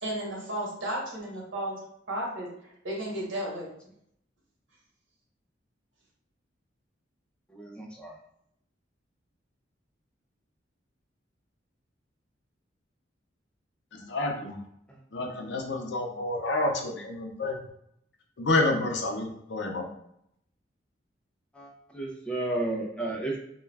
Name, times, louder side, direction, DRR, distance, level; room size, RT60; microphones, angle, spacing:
voice 1, 0.0-1.8 2.1-3.7, right 1 dB, 90° right, -3 dB, 1.0 m, -33 dB
voice 2, 7.5-8.2 14.4-14.5 14.9-15.0 21.5-23.4, right 2 dB, 5° left, 0 dB, 0.4 m, -33 dB
voice 3, 14.1-14.6 15.1-17.6 18.4-19.9, left 2 dB, 65° left, 2 dB, 0.5 m, -29 dB
2.3 x 2.2 x 3.2 m, 0.73 s
head